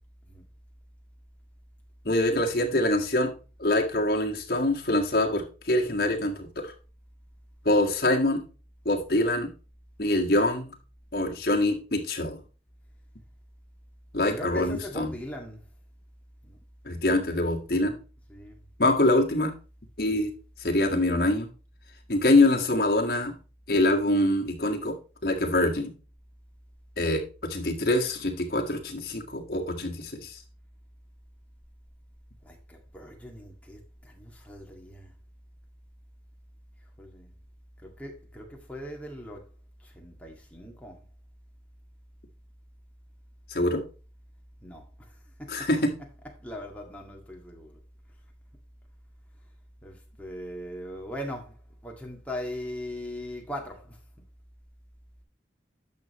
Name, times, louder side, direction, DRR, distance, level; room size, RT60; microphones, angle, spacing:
voice 1, 2.1-3.3 3.6-6.7 7.7-8.4 8.9-9.5 10.0-10.7 11.1-12.4 14.1-15.1 16.9-18.0 18.8-19.5 20.0-20.3 20.6-21.5 22.1-23.4 23.7-25.0 25.2-25.9 27.0-30.4 43.5-43.8 45.5-45.9, left 1 dB, 55° left, 1.8 m, -24 dB
voice 2, 14.3-15.6 16.4-16.6 18.3-18.6 32.4-35.1 37.0-37.3 37.8-39.5 39.8-41.0 44.6-45.7 46.4-47.8 49.8-51.5 51.8-54.0, left 1 dB, 10° left, 2.0 m, -40 dB
10.5 x 6.5 x 3.1 m
head